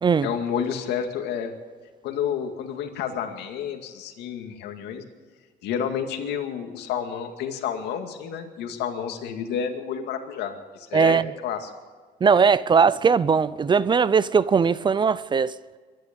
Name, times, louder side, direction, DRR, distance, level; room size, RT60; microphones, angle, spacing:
voice 1, 0.2-1.5 2.0-5.0 5.6-11.7, left 8 dB, 80° left, 2.2 m, -30 dB
voice 2, 10.9-11.3 12.2-15.5, right 6 dB, 25° right, 0.5 m, -19 dB
23.0 x 11.5 x 5.3 m
cardioid pair, 110°, 17 cm